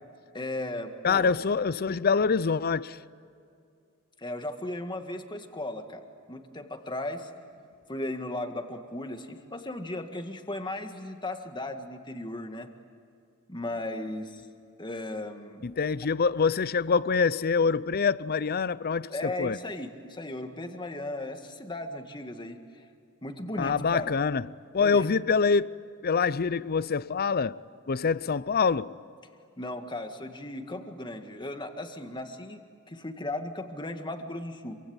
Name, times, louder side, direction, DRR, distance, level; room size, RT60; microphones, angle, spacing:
voice 1, 0.3-1.3 4.2-7.3 7.9-12.7 13.5-14.4 14.8-15.6 19.1-22.6 23.2-24.1 24.8-25.1 29.6-34.8, left 1 dB, 20° left, 1.9 m, -36 dB
voice 2, 1.0-3.0 15.6-19.6 23.6-24.5 24.7-25.7 26.0-27.6 27.9-28.9, left 5 dB, 45° left, 0.6 m, -25 dB
27.0 x 24.5 x 8.9 m
head